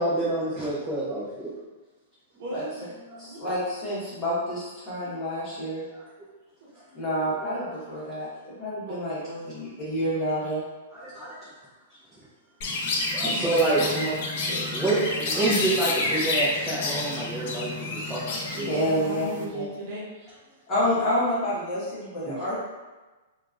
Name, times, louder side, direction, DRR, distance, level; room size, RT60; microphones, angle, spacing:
voice 1, 0.0-1.5 7.6-7.7 10.9-11.4 13.1-14.2 14.7-18.7 22.3-22.5, right 2 dB, 10° right, -10 dB, 0.5 m, -27 dB
voice 2, 2.3-3.4 6.6-6.7 8.9-9.5 18.5-20.0, equal, 55° right, -5 dB, 0.9 m, -37 dB
voice 3, 3.2-5.8 6.9-9.2 9.5-10.6 13.9-14.1 14.5-14.6 18.7-19.6 20.7-22.5, equal, 20° left, -10 dB, 1.1 m, -28 dB
Chirp tweet, 12.6-19.4, left 2 dB, 45° left, 0.5 m, -29 dB
2.8 x 2.3 x 2.4 m, 1.2 s
hypercardioid pair, 160°, 0 cm